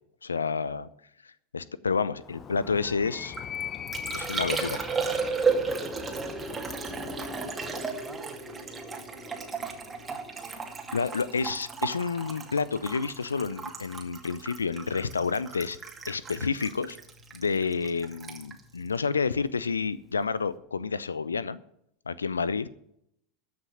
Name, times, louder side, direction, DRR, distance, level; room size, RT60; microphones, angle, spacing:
voice 1, 0.2-0.9 1.2-3.3 4.1-4.8 10.9-15.8 16.1-17.0 17.3-21.6 22.1-22.7, left 5 dB, 85° left, 19 dB, 0.5 m, -29 dB
Animal, 2.2-8.0, left 8 dB, 30° left, 1.1 m, -41 dB
Liquid, 3.1-19.8 20.0-20.5, right 5 dB, 20° right, 2.3 m, -34 dB
sound 1, 3.8-11.9, equal, 10° left, 3.7 m, -46 dB
voice 2, 5.5-9.8 10.1-10.5, right 2 dB, 5° right, 4 dB, 2.3 m, -50 dB
14.0 x 6.0 x 8.7 m, 0.73 s
figure-of-eight pair, 85°, 0 cm